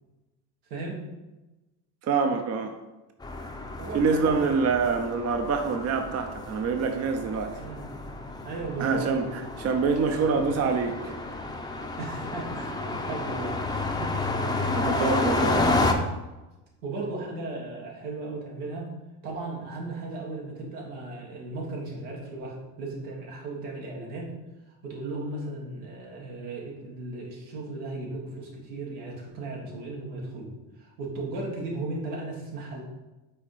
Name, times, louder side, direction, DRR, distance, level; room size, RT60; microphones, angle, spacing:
voice 1, 2.0-2.8 3.9-7.6 8.8-9.3 9.6-11.1 14.7-15.6, right 5 dB, 35° right, 6 dB, 0.7 m, -26 dB
sound 1, 3.2-15.9, left 2 dB, 10° left, 0.7 m, -30 dB
voice 2, 3.8-4.5 7.5-7.8 8.4-9.4 10.1-10.5 12.0-14.4 15.4-15.8 16.8-18.9 19.2-24.3 24.8-30.5 30.8-32.8, right 2 dB, 85° right, -2 dB, 2.0 m, -36 dB
5.6 x 4.1 x 4.9 m, 1.1 s
supercardioid pair, 90°, 46 cm